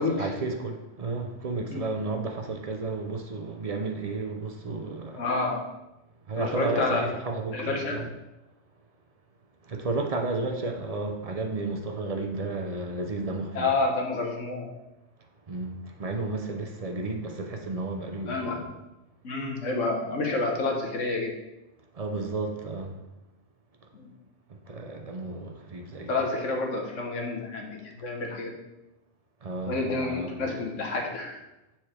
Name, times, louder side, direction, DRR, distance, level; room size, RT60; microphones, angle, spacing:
voice 1, 0.0-5.2 6.3-8.1 9.6-13.7 15.5-18.7 21.9-23.0 23.8-23.9 24.5-26.2 29.4-30.6, right 3 dB, 40° right, 3 dB, 0.6 m, -33 dB
voice 2, 5.2-5.7 6.4-7.0 7.5-8.0 13.5-14.7 18.3-18.6 19.2-21.3 23.9-24.1 26.1-28.5 29.7-31.4, left 3 dB, 85° left, 1 dB, 1.5 m, -29 dB
6.7 x 4.4 x 4.4 m, 0.96 s
omnidirectional pair, 1.3 m